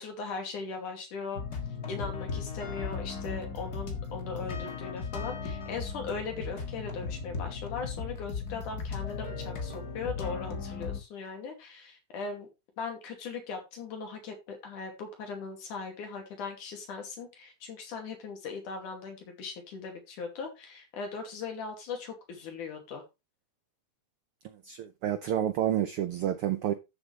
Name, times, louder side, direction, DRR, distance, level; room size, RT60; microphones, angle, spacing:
voice 1, 0.0-1.4 1.9-12.5 12.8-23.0, left 4 dB, 80° left, 4.0 m, -39 dB
sound 1, 1.3-11.0, left 5 dB, 35° left, 1.9 m, -37 dB
voice 2, 24.6-26.7, right 11 dB, 80° right, 1.2 m, -29 dB
13.0 x 7.1 x 3.3 m
omnidirectional pair, 3.5 m